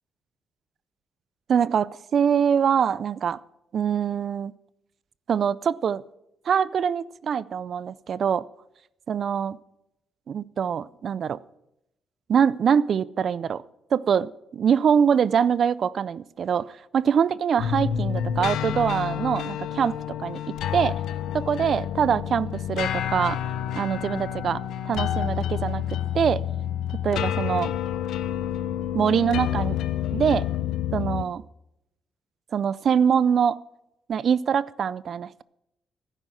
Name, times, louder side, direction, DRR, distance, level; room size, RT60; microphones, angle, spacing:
voice 1, 1.5-3.4 3.7-4.5 5.3-6.0 6.5-8.4 9.1-9.6 10.3-11.4 12.3-13.6 13.9-19.9 20.2-20.4 20.7-21.0 21.3-23.4 23.8-26.4 27.0-27.7 28.9-29.8 30.1-30.5 30.9-31.4 32.5-33.6 34.1-35.4, right 7 dB, 55° right, 20 dB, 0.4 m, -24 dB
sound 1, 17.6-31.3, left 10 dB, 80° left, 0.7 m, -29 dB
11.0 x 9.8 x 7.7 m, 0.84 s
cardioid pair, 90°, 0 cm